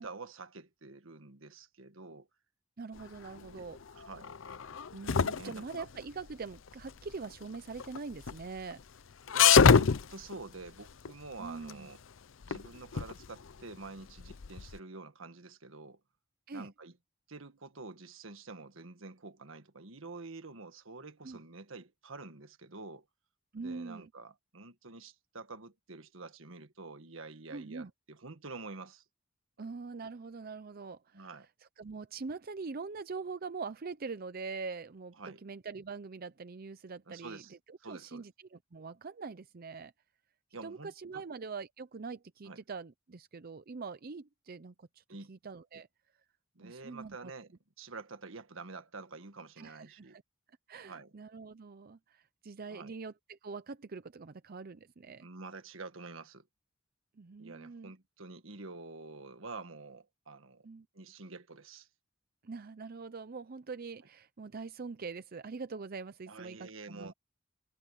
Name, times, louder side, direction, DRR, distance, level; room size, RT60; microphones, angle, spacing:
voice 1, 0.0-2.3 3.5-3.6 3.9-4.4 5.3-5.9 9.3-12.0 12.5-16.0 16.5-17.0 17.3-23.0 23.6-29.0 31.1-31.5 35.2-35.4 37.1-37.5 37.8-38.2 40.5-41.2 42.4-42.6 45.1-45.3 46.5-50.2 50.7-51.1 52.7-52.9 55.2-56.5 57.4-60.7 60.9-61.9 66.3-67.1, right 3 dB, 80° right, 1.6 m, -48 dB
voice 2, 2.8-3.8 4.9-8.8 11.4-11.9 16.5-16.7 21.2-21.4 23.5-24.1 27.5-27.9 29.6-31.3 31.8-37.4 37.7-39.9 40.6-45.9 46.6-47.3 49.6-50.2 50.7-55.3 57.2-57.9 60.6-60.9 62.4-67.1, right 4 dB, 50° right, 0.6 m, -43 dB
sound 1, 2.9-14.8, left 6 dB, 70° left, 0.6 m, -28 dB
head